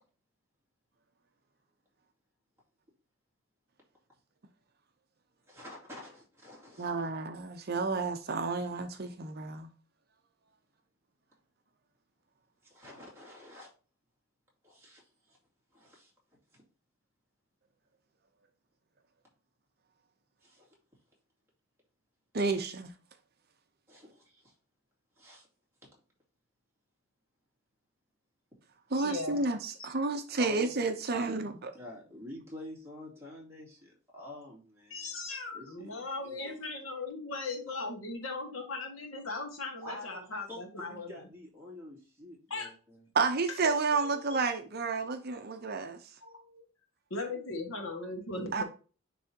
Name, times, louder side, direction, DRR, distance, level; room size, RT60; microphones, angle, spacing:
voice 1, 5.5-7.1 12.6-13.7 14.6-15.4 15.7-16.1 16.5-16.6 20.4-20.7 23.9-24.5 25.2-25.5 30.4-30.7 31.1-31.4 31.7-35.1 35.5-36.6 37.7-37.8 39.8-43.0, left 1 dB, 10° right, 2.3 m, -48 dB
voice 2, 6.8-9.7 22.3-22.9 28.9-31.5 43.1-46.0 48.5-48.6, right 4 dB, 50° right, 0.7 m, -31 dB
voice 3, 29.0-29.4 34.9-41.1 42.5-42.7 44.0-44.4 46.2-46.6 47.1-48.6, left 3 dB, 75° left, 1.8 m, -38 dB
10.5 x 3.4 x 2.8 m
head